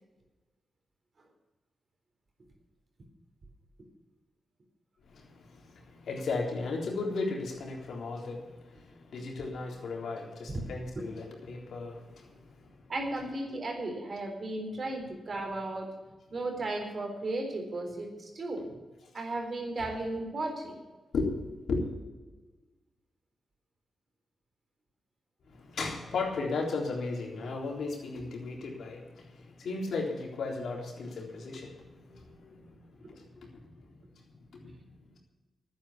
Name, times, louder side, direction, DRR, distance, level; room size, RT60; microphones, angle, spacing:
voice 1, 5.0-12.7 21.1-21.4 21.7-21.8 25.5-33.6 34.5-34.8, left 3 dB, 80° left, -1 dB, 3.8 m, -36 dB
voice 2, 12.9-15.9 16.3-18.7 19.1-20.8, right 2 dB, 55° right, 3 dB, 4.0 m, -35 dB
11.5 x 9.6 x 8.6 m, 1.2 s
cardioid pair, 65°, 0 cm